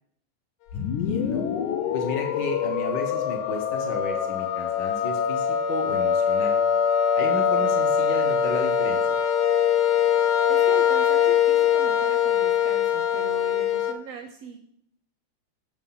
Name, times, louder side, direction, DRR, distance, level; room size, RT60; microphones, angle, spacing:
sound 1, 0.7-13.9, left 8 dB, 85° left, 2.1 m, -23 dB
voice 1, 0.7-1.4 1.9-6.6 7.2-9.2, left 2 dB, 60° left, 2 dB, 1.1 m, -33 dB
voice 2, 10.5-14.6, right 6 dB, 80° right, 5 dB, 1.4 m, -39 dB
7.3 x 5.9 x 5.6 m, 0.69 s
omnidirectional pair, 3.4 m